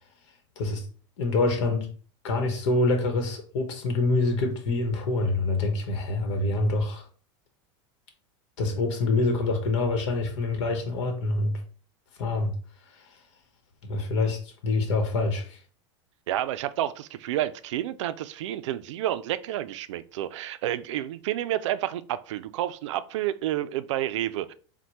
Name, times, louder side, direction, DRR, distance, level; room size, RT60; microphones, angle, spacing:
voice 1, 1.2-1.9 2.2-7.0 8.6-11.6 12.2-12.5 13.8-15.6, left 2 dB, 70° left, 1.0 m, -26 dB
voice 2, 16.3-24.5, right 13 dB, 80° right, 0.4 m, -30 dB
4.4 x 2.2 x 4.1 m
hypercardioid pair, 110°, 15 cm